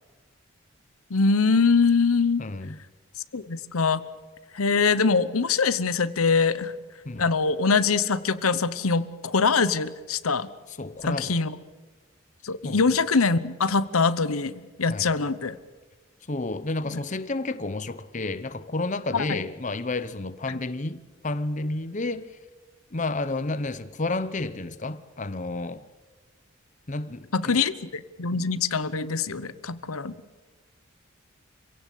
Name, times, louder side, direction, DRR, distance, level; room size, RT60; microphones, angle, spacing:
voice 1, 1.1-2.4 3.3-4.0 4.5-6.7 7.2-10.5 11.0-11.6 12.4-14.5 14.8-15.6 19.1-19.4 20.5-20.6 27.3-30.1, left 4 dB, 90° left, 1.0 m, -23 dB
voice 2, 2.4-2.8 7.0-7.3 10.7-11.3 12.6-12.8 14.9-15.1 16.3-22.4 22.9-25.8 26.9-27.6, left 2 dB, 35° left, 0.8 m, -31 dB
26.0 x 17.0 x 8.4 m
head